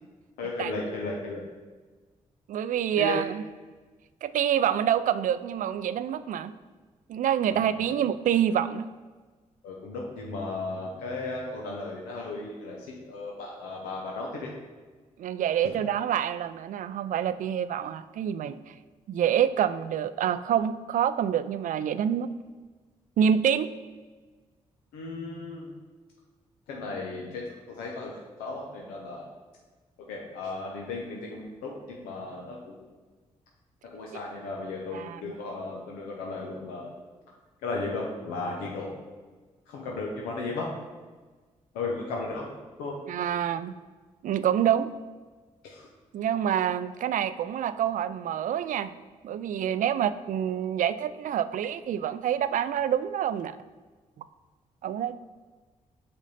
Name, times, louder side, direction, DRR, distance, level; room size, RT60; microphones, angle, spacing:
voice 1, 0.4-1.4 3.0-3.2 7.5-7.6 9.6-14.5 15.6-15.8 24.9-25.7 26.7-27.4 27.7-29.3 30.1-32.8 33.8-36.9 37.6-38.9 39.7-40.7 41.7-42.5 42.8-43.0 45.6-45.9, left 3 dB, 90° left, -2 dB, 0.7 m, -35 dB
voice 2, 2.5-3.4 4.2-6.5 7.1-8.9 15.2-18.7 19.1-22.3 23.2-23.7 34.9-35.3 43.1-43.7 44.2-44.9 46.1-48.9 49.2-53.6 54.8-55.2, right 9 dB, 65° right, 14 dB, 0.4 m, -27 dB
5.2 x 5.1 x 4.1 m, 1.3 s
hypercardioid pair, 45°, 15 cm